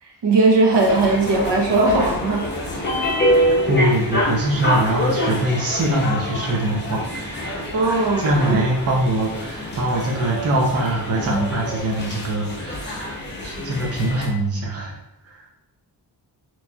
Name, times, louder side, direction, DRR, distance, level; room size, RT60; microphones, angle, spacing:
voice 1, 0.0-2.7 7.7-8.6, right 3 dB, 80° right, 0 dB, 0.9 m, -19 dB
sound 1, 0.7-14.3, equal, 25° left, 0.7 m, -26 dB
voice 2, 3.7-14.9 15.2-15.5, right 1 dB, 35° right, -2 dB, 0.6 m, -23 dB
4.1 x 3.0 x 2.3 m, 0.89 s
wide cardioid pair, 160°, 41 cm